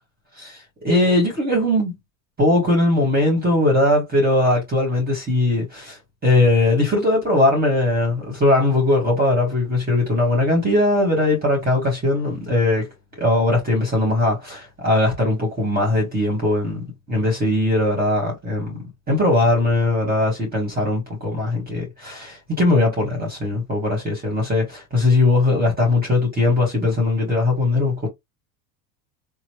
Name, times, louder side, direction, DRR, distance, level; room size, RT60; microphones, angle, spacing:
voice 1, 0.3-1.9 2.4-12.9 13.2-28.1, left 2 dB, 20° right, 1.4 m, -20 dB
3.0 x 2.0 x 3.0 m
supercardioid pair, 110°, 45 cm